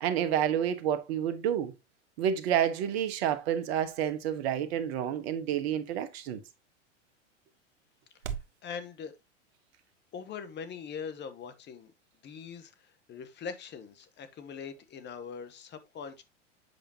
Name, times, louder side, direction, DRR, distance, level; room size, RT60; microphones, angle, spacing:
voice 1, 0.0-1.7 2.2-6.4, right 9 dB, 60° right, 1.3 m, -29 dB
sound 1, 2.3-8.6, right 8 dB, 80° right, 0.9 m, -48 dB
voice 2, 8.6-9.2 10.1-11.9 12.2-16.2, left 6 dB, 30° left, 1.2 m, -42 dB
7.9 x 5.0 x 2.8 m
hypercardioid pair, 100°, 36 cm